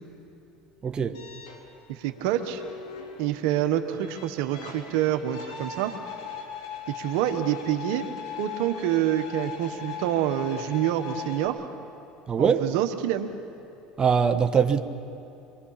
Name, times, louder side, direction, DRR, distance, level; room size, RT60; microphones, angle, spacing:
voice 1, 0.8-1.2 12.3-12.7 14.0-14.8, right 6 dB, 30° right, 6 dB, 1.2 m, -22 dB
sound 1, 1.1-11.5, left 7 dB, 90° left, 2.7 m, -40 dB
voice 2, 1.9-2.6 3.2-5.9 6.9-8.0 8.4-11.7 12.4-13.3, right 11 dB, 75° right, 7 dB, 1.3 m, -27 dB
26.0 x 22.5 x 5.8 m, 2.8 s
supercardioid pair, 95°, 3 cm